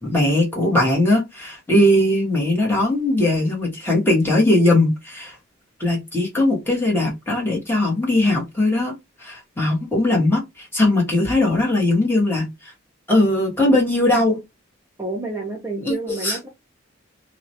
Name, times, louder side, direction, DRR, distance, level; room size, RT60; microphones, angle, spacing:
voice 1, 0.0-5.4 5.8-12.5 13.1-14.4 15.8-15.9 16.2-16.4, left 1 dB, 10° left, 0.8 m, -19 dB
voice 2, 15.0-16.5, right 2 dB, 15° right, 0.4 m, -29 dB
2.3 x 2.0 x 2.7 m
head